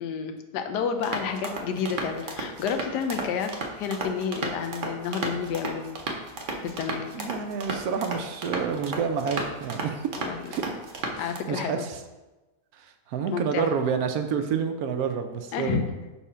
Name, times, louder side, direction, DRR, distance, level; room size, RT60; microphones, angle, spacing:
voice 1, 0.0-5.9 6.6-7.1 10.3-10.5 11.2-11.9 13.3-13.7 15.5-15.8, left 6 dB, 85° left, 7 dB, 1.2 m, -30 dB
sound 1, 1.0-11.4, right 2 dB, 50° right, 0.6 m, -34 dB
voice 2, 7.1-10.1 10.5-10.6 11.1-12.0 12.8-15.8, right 6 dB, 70° right, 7 dB, 1.0 m, -29 dB
4.7 x 4.3 x 5.4 m, 1.1 s
omnidirectional pair, 1.8 m